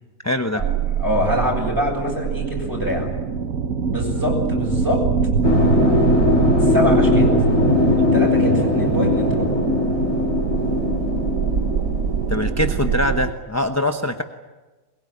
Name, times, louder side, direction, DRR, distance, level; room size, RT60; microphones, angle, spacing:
voice 1, 0.2-0.6 12.3-14.2, left 1 dB, 15° left, 7 dB, 0.9 m, -23 dB
sound 1, 0.6-13.3, right 6 dB, 90° right, 1.4 m, -22 dB
voice 2, 1.0-3.1 3.9-5.1 6.6-7.4 8.1-9.5, left 1 dB, 15° right, -2 dB, 7.5 m, -24 dB
sound 2, 5.4-13.0, left 4 dB, 75° left, 3.5 m, -21 dB
23.0 x 21.0 x 9.8 m, 1.2 s
omnidirectional pair, 1.4 m